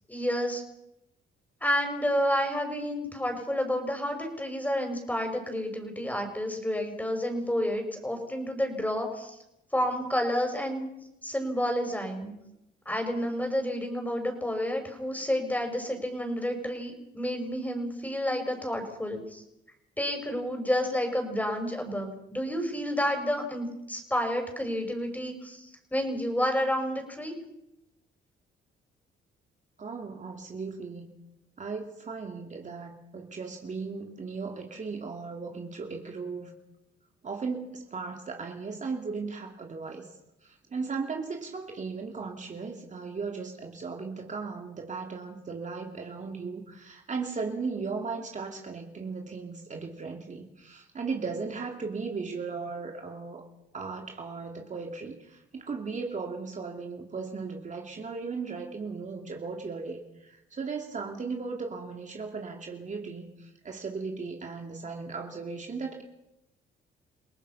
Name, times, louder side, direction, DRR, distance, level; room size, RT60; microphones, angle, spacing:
voice 1, 0.1-0.6 1.6-9.4 9.7-10.9 11.2-12.3 12.9-19.4 20.0-27.3, equal, 10° left, 4 dB, 6.0 m, -30 dB
voice 2, 29.8-31.1 31.6-36.5 37.2-40.1 40.4-53.5 53.7-66.0, right 4 dB, 40° right, 2 dB, 2.7 m, -36 dB
28.5 x 18.5 x 5.7 m, 0.87 s
cardioid pair, 90°, 20 cm